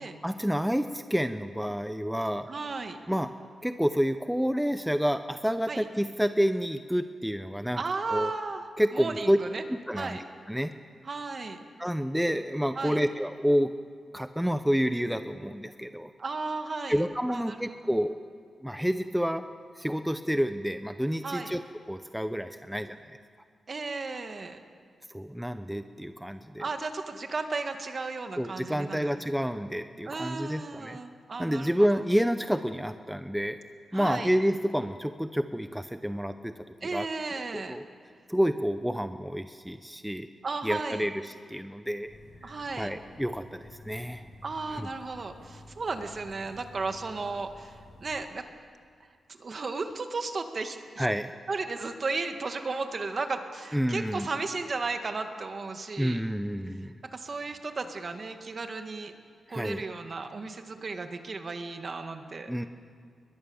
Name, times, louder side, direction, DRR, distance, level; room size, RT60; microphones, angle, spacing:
voice 1, 0.2-2.5 3.1-3.3 3.6-7.8 8.1-8.3 8.8-9.4 9.7-10.2 10.5-10.7 11.8-13.7 14.1-16.1 16.9-18.2 18.6-19.4 19.8-21.6 21.9-23.0 25.1-26.6 28.4-31.0 31.4-33.6 33.9-36.5 36.8-37.1 37.5-37.8 38.3-40.3 40.6-42.1 42.4-44.3 44.8-44.9 51.0-51.3 53.7-54.3 56.0-57.0 59.5-59.8 62.5-62.7, equal, ahead, 9 dB, 0.7 m, -29 dB
voice 2, 2.5-3.0 5.7-5.8 7.7-8.7 8.9-9.6 9.9-10.2 11.0-11.6 12.8-13.0 16.2-17.0 17.3-17.7 21.2-21.5 23.7-24.6 26.6-29.3 30.1-32.0 33.9-34.3 36.8-37.8 40.4-41.1 42.4-42.9 44.4-48.5 49.3-51.1 51.5-56.2 57.0-59.1 59.5-62.5, right 3 dB, 45° right, 6 dB, 1.8 m, -34 dB
sound 1, 42.0-48.2, left 1 dB, 60° left, 7.3 m, -51 dB
22.0 x 21.0 x 7.1 m, 2.1 s
cardioid pair, 90°, 0 cm